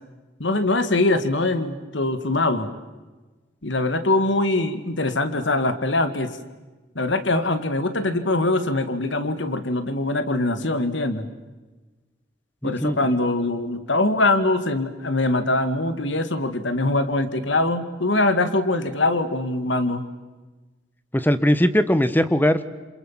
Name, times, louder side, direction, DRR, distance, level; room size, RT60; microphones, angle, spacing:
voice 1, 0.4-2.7 3.6-6.4 7.0-11.3 12.6-20.0, left 2 dB, 85° left, 10 dB, 2.1 m, -23 dB
voice 2, 12.6-13.2 21.1-22.6, equal, 10° left, 12 dB, 1.2 m, -20 dB
28.0 x 27.5 x 7.5 m, 1.2 s
head